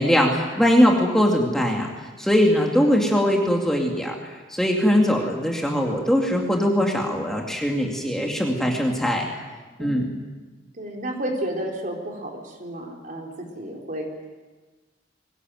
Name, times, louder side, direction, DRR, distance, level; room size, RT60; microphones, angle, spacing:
voice 1, 0.0-1.9 2.2-9.3 9.8-10.1, equal, 5° left, -1 dB, 2.4 m, -21 dB
voice 2, 10.8-14.1, right 1 dB, 45° right, 0 dB, 4.3 m, -32 dB
22.5 x 19.0 x 9.3 m, 1.3 s
head